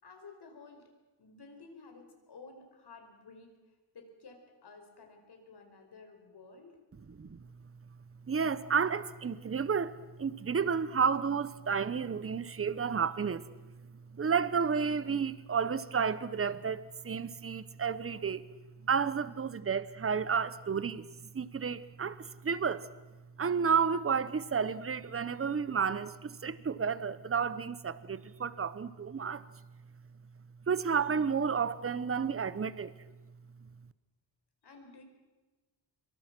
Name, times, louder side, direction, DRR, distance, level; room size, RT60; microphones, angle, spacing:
voice 1, 0.0-0.8 1.2-3.5 3.9-6.7 34.6-35.0, left 4 dB, 70° left, 4.9 m, -53 dB
voice 2, 7.1-7.4 8.3-13.4 14.1-18.4 18.8-21.0 21.3-22.9 23.4-29.4 30.7-32.9, right 6 dB, 35° right, 0.9 m, -31 dB
26.5 x 23.5 x 6.1 m
wide cardioid pair, 145°, 41 cm